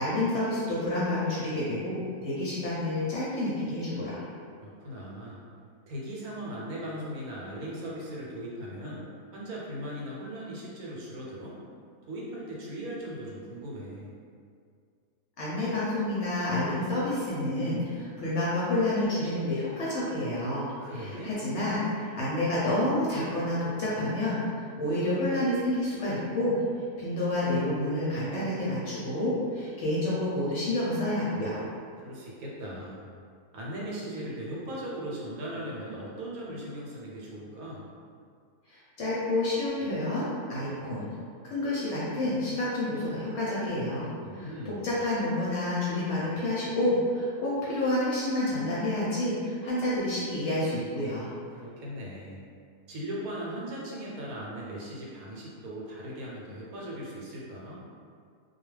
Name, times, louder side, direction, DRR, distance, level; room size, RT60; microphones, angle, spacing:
voice 1, 0.0-4.2 15.4-26.6 27.0-31.6 38.7-41.1 41.4-44.1 44.3-51.3, left 1 dB, 65° left, -8 dB, 0.8 m, -29 dB
voice 2, 4.6-5.4 5.9-11.6 12.1-14.1 20.8-21.3 32.0-33.0 33.5-37.9 44.2-44.8 51.5-52.4 52.9-57.8, right 1 dB, 75° right, -5 dB, 1.1 m, -38 dB
2.3 x 2.3 x 3.1 m, 2.2 s
omnidirectional pair, 1.6 m